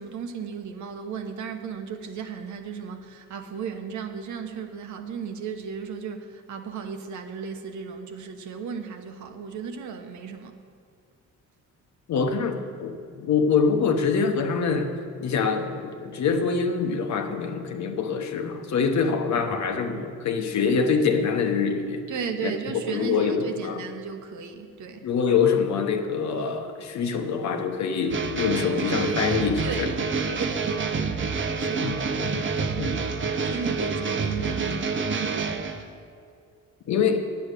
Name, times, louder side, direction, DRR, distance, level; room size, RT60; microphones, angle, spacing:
voice 1, 0.0-10.5 22.1-25.0 29.6-29.9 30.4-31.2 31.6-32.0 32.8-33.0 33.4-35.7, right 6 dB, 75° right, 1.0 m, -35 dB
voice 2, 12.1-14.9 15.2-22.1 22.4-23.9 25.0-29.9 31.8-32.4 32.8-33.0 36.9-37.3, left 5 dB, 65° left, 1.1 m, -25 dB
sound 1, 28.1-35.8, right 4 dB, 40° right, 0.8 m, -28 dB
9.4 x 7.8 x 6.7 m
cardioid pair, 90°, 30 cm